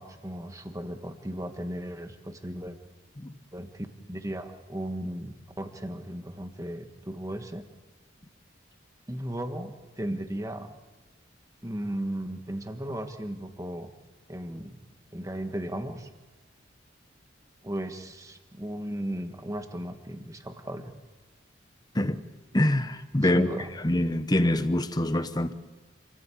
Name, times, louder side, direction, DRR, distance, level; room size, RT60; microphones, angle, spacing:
voice 1, 0.0-2.8 3.5-7.7 9.1-10.7 11.6-13.9 14.3-14.8 15.1-16.1 17.6-20.9 23.2-23.7, right 1 dB, 15° right, 1.5 m, -36 dB
voice 2, 22.5-23.5 23.8-25.5, left 1 dB, 20° left, 0.9 m, -25 dB
28.0 x 16.0 x 8.5 m
head